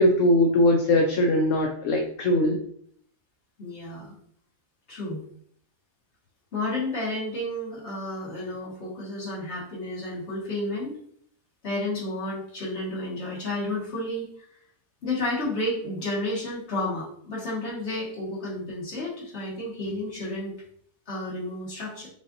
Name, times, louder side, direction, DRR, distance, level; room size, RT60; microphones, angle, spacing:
voice 1, 0.0-2.6, left 1 dB, 70° left, 2 dB, 0.9 m, -21 dB
voice 2, 3.6-4.1 4.9-5.2 6.5-10.9 11.6-14.3 15.0-20.5 21.1-22.1, left 1 dB, 55° left, -5 dB, 1.8 m, -31 dB
6.5 x 2.5 x 2.6 m, 0.62 s
omnidirectional pair, 1.5 m